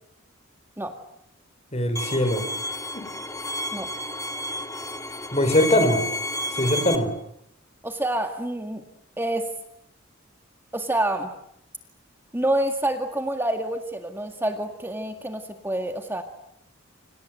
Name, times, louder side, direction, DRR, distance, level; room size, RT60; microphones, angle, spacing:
voice 1, 1.7-2.4 2.9-3.1 5.3-6.0 6.6-7.1, left 1 dB, 30° left, 9 dB, 4.9 m, -21 dB
Bowed string instrument, 2.0-7.0, left 1 dB, 15° left, 1.9 m, -31 dB
voice 2, 7.8-8.8 9.2-9.5 10.7-11.3 12.3-16.2, right 1 dB, 10° right, 5 dB, 1.9 m, -27 dB
28.5 x 27.0 x 7.7 m, 0.74 s
head